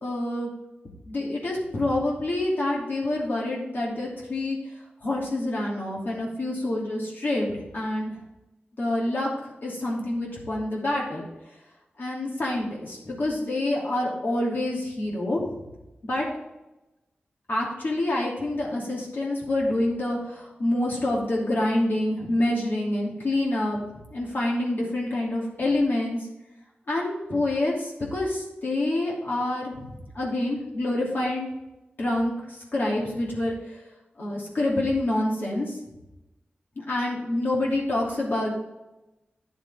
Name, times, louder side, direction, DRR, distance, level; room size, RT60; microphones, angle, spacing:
voice 1, 0.0-0.5 1.0-4.6 5.0-8.1 8.8-9.3 9.6-11.2 12.0-15.6 16.1-16.2 17.5-23.8 24.1-26.3 26.9-31.5 32.0-33.5 34.2-35.8 36.8-38.5, left 1 dB, 65° left, -4 dB, 2.7 m, -27 dB
9.6 x 7.0 x 3.5 m, 0.99 s
cardioid pair, 65°, 4 cm